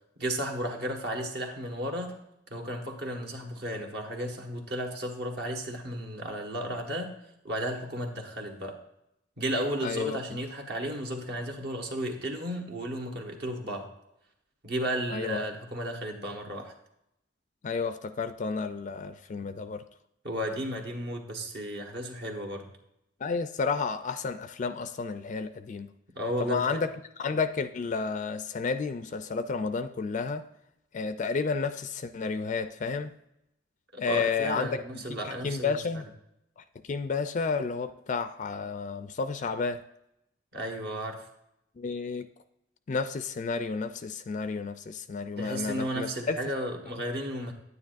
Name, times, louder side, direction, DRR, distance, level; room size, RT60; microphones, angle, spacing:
voice 1, 0.2-2.2 2.5-7.1 7.4-8.8 9.4-13.9 14.6-16.7 20.2-22.7 26.2-26.8 33.9-36.0 40.5-41.3 45.4-47.5, equal, 60° right, 4 dB, 1.3 m, -34 dB
voice 2, 9.8-10.2 15.1-15.5 17.6-19.8 23.2-25.9 26.4-30.4 30.9-33.1 34.0-34.8 35.2-36.0 36.6-39.8 41.8-42.3 42.9-46.4, left 4 dB, 40° left, 11 dB, 0.4 m, -31 dB
9.6 x 9.5 x 2.5 m, 0.82 s
head